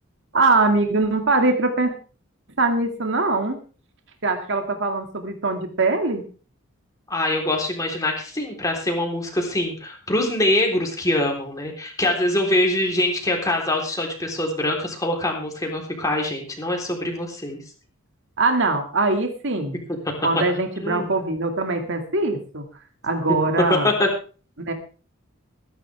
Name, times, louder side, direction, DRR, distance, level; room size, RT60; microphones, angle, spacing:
voice 1, 0.3-1.9 2.6-3.6 4.2-6.2 18.4-19.8 20.2-22.6 23.0-23.9 24.6-24.7, right 3 dB, 60° right, 4 dB, 2.3 m, -22 dB
voice 2, 7.1-17.6 20.8-21.1 23.7-24.1, left 1 dB, 15° left, 1 dB, 3.7 m, -24 dB
20.5 x 10.5 x 3.5 m, 0.37 s
head